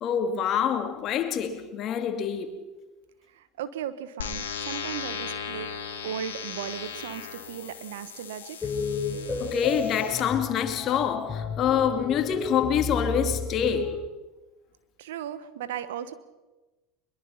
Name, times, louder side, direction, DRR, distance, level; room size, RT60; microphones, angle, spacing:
voice 1, 0.0-2.6 9.4-14.0, left 8 dB, 45° left, 2.6 m, -26 dB
voice 2, 3.3-5.7 6.0-8.7 15.0-16.1, right 9 dB, 75° right, 1.3 m, -36 dB
sound 1, 4.2-10.2, left 7 dB, 85° left, 3.1 m, -37 dB
sound 2, 8.6-13.9, left 4 dB, 15° left, 7.9 m, -32 dB
22.5 x 22.0 x 5.8 m
hypercardioid pair, 85°, 0 cm